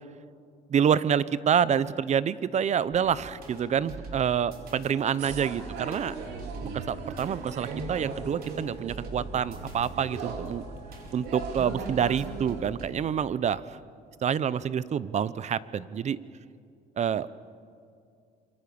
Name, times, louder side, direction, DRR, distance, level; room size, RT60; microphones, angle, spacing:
voice 1, 0.7-6.1 6.7-10.6 11.1-13.6 14.2-16.2 17.0-17.3, right 8 dB, 40° right, 17 dB, 0.8 m, -27 dB
sound 1, 2.9-12.9, right 3 dB, 65° right, 4.8 m, -44 dB
sound 2, 5.2-12.6, right 4 dB, 80° right, 3.2 m, -38 dB
27.5 x 24.0 x 7.1 m, 2.4 s
cardioid pair, 110°, 17 cm